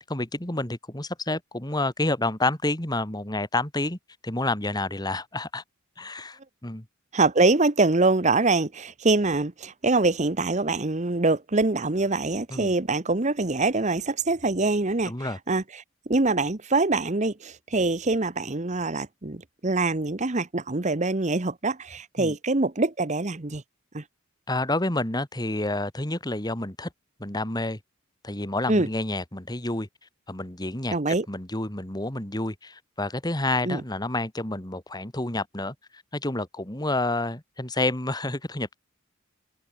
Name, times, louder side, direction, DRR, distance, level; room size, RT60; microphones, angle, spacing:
voice 1, 0.0-5.6 6.0-6.8 12.5-12.7 15.1-15.4 22.2-22.3 24.5-26.9 27.2-27.8 28.2-29.9 30.3-38.8, left 2 dB, 20° left, 2.2 m, -29 dB
voice 2, 7.1-15.8 16.1-23.6 23.9-24.0 28.7-28.9 30.9-31.2 33.6-33.8, right 3 dB, 35° right, 1.1 m, -24 dB
head